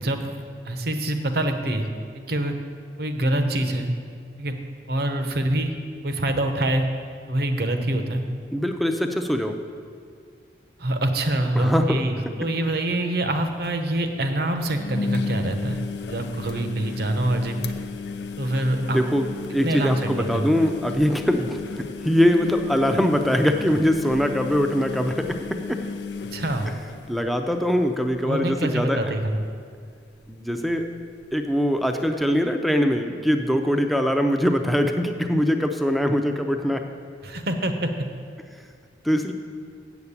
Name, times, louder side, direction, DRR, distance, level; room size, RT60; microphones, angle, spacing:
voice 1, 0.0-1.9 2.1-2.5 3.0-3.9 4.4-4.5 4.9-5.8 6.0-6.9 7.3-8.2 10.8-15.8 16.1-17.6 18.4-19.0 19.6-20.5 26.3-26.7 28.2-29.4 37.2-37.9, right 1 dB, 60° right, 6 dB, 0.9 m, -25 dB
voice 2, 8.5-9.6 11.6-12.0 18.8-25.8 27.1-29.1 30.3-30.9 31.3-36.8 39.0-39.3, equal, ahead, 4 dB, 0.5 m, -22 dB
sound 1, 13.4-13.5 13.6-13.7 14.7-27.8 28.1-28.5 28.8-28.9 30.8-30.9, left 5 dB, 70° left, 0.5 m, -34 dB
7.9 x 7.1 x 8.2 m, 2.1 s
head